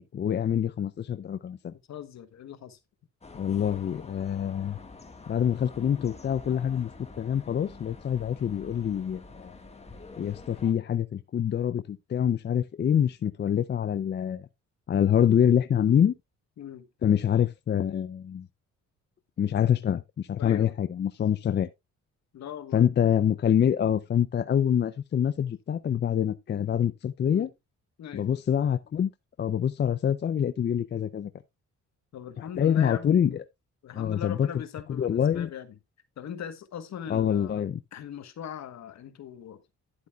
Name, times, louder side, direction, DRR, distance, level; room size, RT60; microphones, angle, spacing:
voice 1, 0.0-1.7 3.3-4.8 5.3-6.9 7.2-9.5 10.2-14.4 14.9-16.1 17.0-18.5 19.4-21.7 22.7-27.5 28.1-29.1 29.4-31.3 32.6-33.4 33.9-34.5 34.9-35.5 37.1-37.8, left 9 dB, 35° left, 0.5 m, -25 dB
voice 2, 1.9-2.8 16.6-16.9 20.4-20.7 22.3-22.9 27.3-27.5 28.0-28.3 32.1-33.2 33.8-35.8 36.2-37.7 37.9-39.6, left 9 dB, 65° left, 1.3 m, -40 dB
sound 1, 3.2-10.7, left 3 dB, 20° left, 1.6 m, -47 dB
10.5 x 8.1 x 2.4 m
cardioid pair, 90°, 30 cm